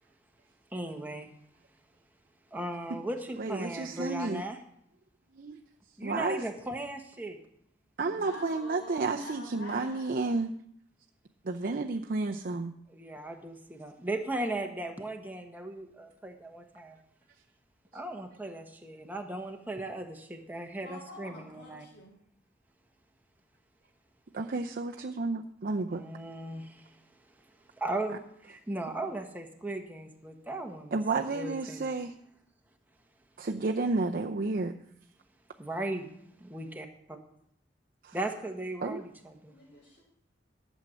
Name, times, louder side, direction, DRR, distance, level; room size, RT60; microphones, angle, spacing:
voice 1, 0.7-1.3 2.5-4.6 6.0-7.4 12.9-17.0 17.9-21.8 25.9-26.9 27.8-28.2 28.5-31.0 31.3-31.9 35.6-36.1 36.4-36.8 38.1-39.5, right 1 dB, 10° right, 3 dB, 1.1 m, -37 dB
voice 2, 3.4-4.4 5.3-5.6 6.0-6.4 8.0-10.5 11.4-12.7 24.3-26.0 30.9-32.1 33.4-34.7 38.0-38.2 38.8-39.0, right 3 dB, 50° right, 3 dB, 0.6 m, -31 dB
voice 3, 8.1-10.4 20.8-22.2 39.5-40.0, left 1 dB, 60° left, -4 dB, 4.5 m, -48 dB
11.5 x 6.4 x 7.6 m, 0.71 s
head